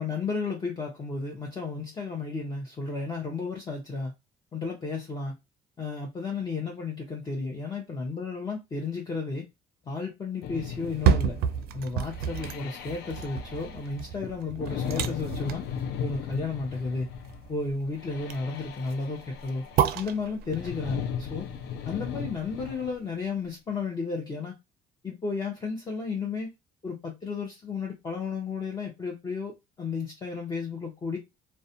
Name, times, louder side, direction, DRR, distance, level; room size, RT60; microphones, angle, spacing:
voice 1, 0.0-4.1 4.5-5.3 5.8-9.5 9.8-11.4 11.7-15.6 16.0-17.1 17.5-19.6 19.9-21.5 21.8-24.5 25.0-26.5 26.8-31.2, left 4 dB, 25° left, 0.6 m, -33 dB
sound 1, 10.4-23.0, left 8 dB, 75° left, 0.4 m, -37 dB
sound 2, 10.8-22.8 23.2-23.3, right 8 dB, 65° right, 0.4 m, -31 dB
2.3 x 2.1 x 2.7 m
cardioid pair, 110°, 17 cm